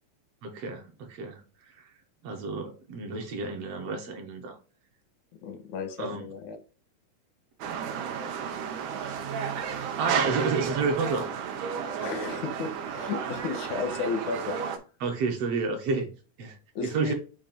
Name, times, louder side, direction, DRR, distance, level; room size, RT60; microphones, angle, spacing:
voice 1, 0.4-1.4 2.2-4.6 6.0-6.2 9.8-11.3 15.0-16.1 16.4-16.6 16.8-17.1, right 4 dB, 65° right, 1.9 m, -30 dB
voice 2, 5.4-6.6 12.0-14.6 16.8-17.1, left 4 dB, 90° left, 2.4 m, -33 dB
sound 1, 7.6-14.8, right 7 dB, 85° right, 2.3 m, -32 dB
7.4 x 2.5 x 5.1 m
omnidirectional pair, 3.3 m